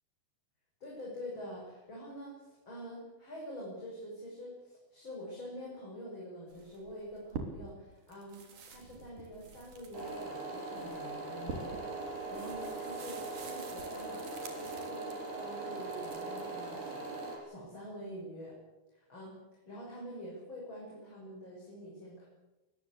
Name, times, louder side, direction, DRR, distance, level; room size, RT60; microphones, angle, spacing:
voice 1, 0.8-8.4 8.7-14.2 14.5-18.5 18.9-22.2, equal, 30° left, -3 dB, 6.8 m, -46 dB
sound 1, 6.5-7.8 8.1-15.3 15.8-16.5, right 4 dB, 55° right, 4.7 m, -47 dB
sound 2, 9.9-17.4, right 2 dB, 75° right, 8.7 m, -40 dB
23.5 x 20.0 x 8.4 m, 1.1 s
omnidirectional pair, 4.7 m